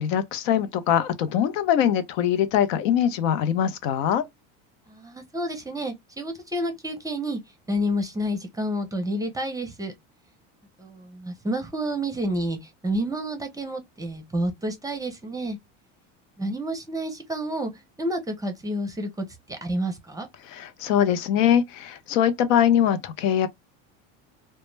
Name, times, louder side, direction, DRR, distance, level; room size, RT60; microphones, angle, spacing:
voice 1, 0.0-4.2 20.4-23.5, left 9 dB, 85° left, 0.6 m, -22 dB
voice 2, 4.9-7.4 7.7-9.9 10.8-12.6 12.8-15.6 16.4-17.7 18.0-20.3, equal, 10° right, 0.5 m, -29 dB
2.1 x 2.0 x 3.1 m
supercardioid pair, 115°, 37 cm